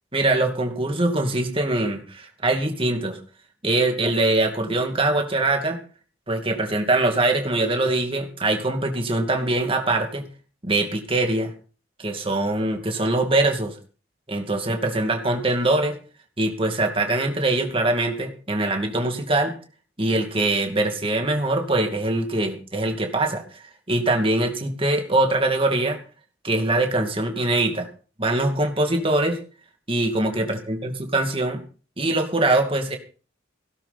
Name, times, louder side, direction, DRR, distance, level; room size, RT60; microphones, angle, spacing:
voice 1, 0.1-3.2 3.6-5.8 6.3-10.2 10.6-11.5 12.0-13.7 14.3-16.0 16.4-19.5 20.0-23.4 23.9-26.0 26.4-27.9 28.2-29.4 29.9-31.6 32.0-33.0, right 2 dB, 25° right, 4 dB, 2.4 m, -23 dB
17.0 x 12.5 x 4.3 m, 0.39 s
head